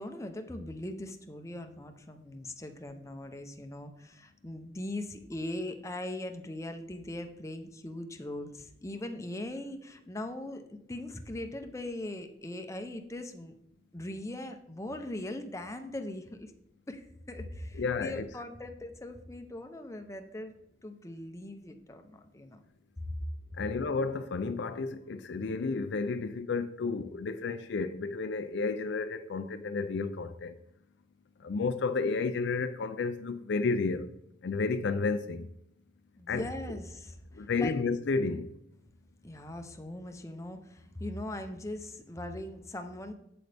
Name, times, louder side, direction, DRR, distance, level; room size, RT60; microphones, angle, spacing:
voice 1, 0.0-13.5 13.9-16.5 16.9-20.5 20.8-22.6 23.0-23.2 36.2-37.8 39.2-43.1, left 1 dB, 15° left, 0.6 m, -40 dB
voice 2, 17.8-18.3 23.6-30.5 31.4-34.1 34.4-35.5 36.3-36.4 37.4-38.5, left 4 dB, 60° left, 0.4 m, -31 dB
8.1 x 7.9 x 3.4 m
head